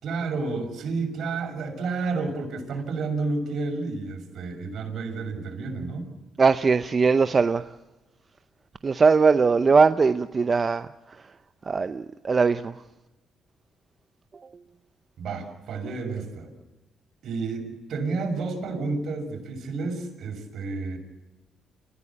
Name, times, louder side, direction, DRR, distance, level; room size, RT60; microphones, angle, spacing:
voice 1, 0.0-6.1 15.2-16.5 17.2-21.0, right 3 dB, 70° right, 6.4 m, -30 dB
voice 2, 6.4-7.7 8.8-10.9 11.7-12.7, right 4 dB, 35° right, 0.7 m, -20 dB
28.5 x 15.5 x 8.5 m
cardioid pair, 90°, 0 cm